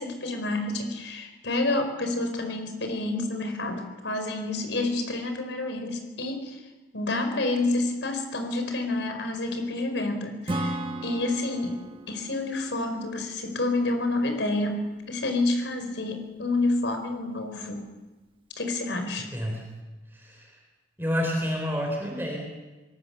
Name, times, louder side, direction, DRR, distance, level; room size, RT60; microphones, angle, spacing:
voice 1, 0.0-6.6 6.9-11.8 12.1-17.9 18.6-19.3, left 2 dB, 85° left, 5 dB, 4.7 m, -29 dB
Acoustic guitar / Strum, 10.5-14.0, right 1 dB, 30° right, 1.4 m, -35 dB
voice 2, 20.1-20.5 21.0-22.4, equal, 10° right, 0 dB, 3.8 m, -29 dB
25.0 x 19.0 x 6.9 m, 1.2 s
head